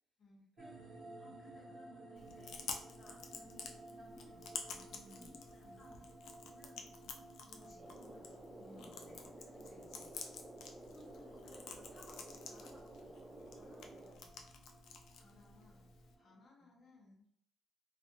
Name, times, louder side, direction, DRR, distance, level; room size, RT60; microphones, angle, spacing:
sound 1, 0.6-16.5, right 2 dB, 70° right, 0.7 m, -57 dB
voice 1, 1.2-4.5 5.1-6.1 6.4-9.8 10.9-14.5 16.5-16.8, left 1 dB, 20° left, -4 dB, 0.8 m, -62 dB
Chewing mastication, 2.2-16.2, left 5 dB, 80° left, 0.3 m, -51 dB
voice 2, 4.6-5.3 5.6-6.1 7.7-7.9 8.6-9.2 9.5-10.1 15.2-15.9 16.1-17.4, left 2 dB, 60° left, -2 dB, 0.8 m, -62 dB
sound 2, 7.8-14.1, right 1 dB, 35° right, 0.6 m, -53 dB
2.5 x 2.1 x 2.6 m, 0.67 s
cardioid pair, 90°, 0 cm